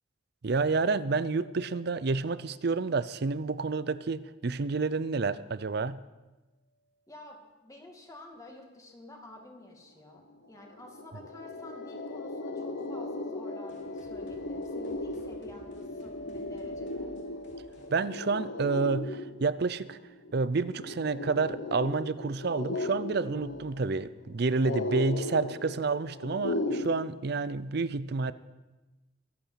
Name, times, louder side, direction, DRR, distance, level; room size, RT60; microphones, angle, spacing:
voice 1, 0.4-6.0 17.9-20.0 20.3-28.3, right 4 dB, 55° right, 16 dB, 0.5 m, -29 dB
sound 1, 0.6-3.8 4.0-4.1 11.3-19.3, left 2 dB, 35° left, 1.3 m, -49 dB
voice 2, 7.1-17.1, left 1 dB, 15° left, 1 dB, 2.3 m, -50 dB
sound 2, 10.3-10.4 10.7-26.9, left 2 dB, 85° left, 1.1 m, -37 dB
sound 3, 13.7-19.1, equal, 65° left, 3.3 m, -58 dB
22.5 x 8.7 x 5.7 m, 1.1 s
head